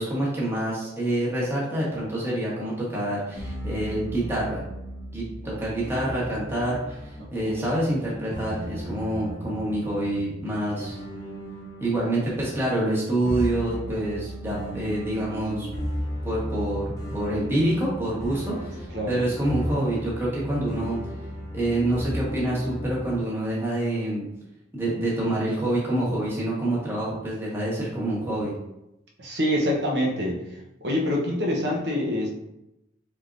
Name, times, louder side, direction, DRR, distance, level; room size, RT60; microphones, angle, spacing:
voice 1, 0.0-4.6 5.1-11.0 11.8-15.7 16.2-21.0 21.5-24.3 24.7-28.5, right 1 dB, 15° right, -6 dB, 1.3 m, -27 dB
sound 1, 3.4-23.2, equal, 20° left, 0.7 m, -35 dB
voice 2, 7.4-7.8 18.9-19.2 29.2-30.4 30.8-32.3, left 1 dB, 65° right, -2 dB, 1.0 m, -26 dB
4.4 x 3.5 x 2.6 m, 0.87 s
head